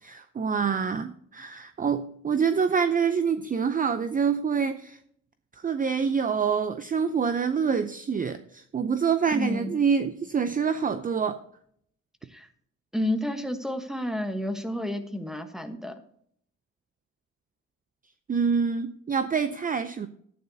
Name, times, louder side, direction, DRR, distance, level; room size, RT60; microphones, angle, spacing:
voice 1, 0.0-5.0 5.6-11.4 18.3-20.1, right 6 dB, 30° right, 10 dB, 0.5 m, -26 dB
voice 2, 9.3-9.8 12.3-12.5 12.9-16.0, left 1 dB, ahead, 8 dB, 1.2 m, -30 dB
12.0 x 9.4 x 2.8 m, 0.65 s
cardioid pair, 90°, 30 cm